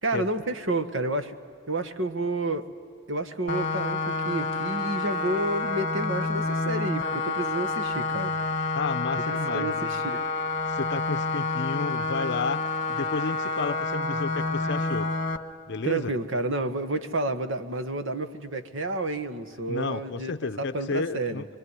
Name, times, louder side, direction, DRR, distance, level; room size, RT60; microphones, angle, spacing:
voice 1, 0.0-1.3 1.7-2.7 3.1-8.3 9.3-10.2 15.8-21.4, right 2 dB, 65° right, 10 dB, 1.5 m, -30 dB
sound 1, 3.5-15.4, left 3 dB, 40° left, 1.5 m, -28 dB
voice 2, 8.7-10.2 10.7-15.1 15.7-16.1 19.7-21.5, left 4 dB, 60° left, 10 dB, 0.7 m, -32 dB
25.0 x 24.5 x 9.8 m, 2.2 s
head